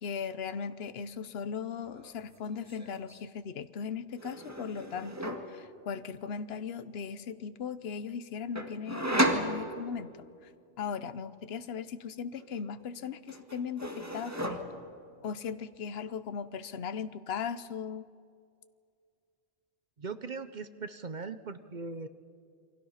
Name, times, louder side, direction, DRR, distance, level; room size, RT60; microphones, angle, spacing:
voice 1, 0.0-10.1 10.8-14.6 15.2-18.1, left 6 dB, 65° left, 13 dB, 1.1 m, -38 dB
sound 1, 1.8-2.2 2.4-3.2 4.2-5.6 8.6-10.2 12.4-13.0 13.3-15.0, right 1 dB, 15° right, 2.0 m, -34 dB
voice 2, 20.0-22.1, right 4 dB, 45° right, 11 dB, 0.9 m, -39 dB
29.0 x 23.5 x 5.7 m, 2.3 s
omnidirectional pair, 1.2 m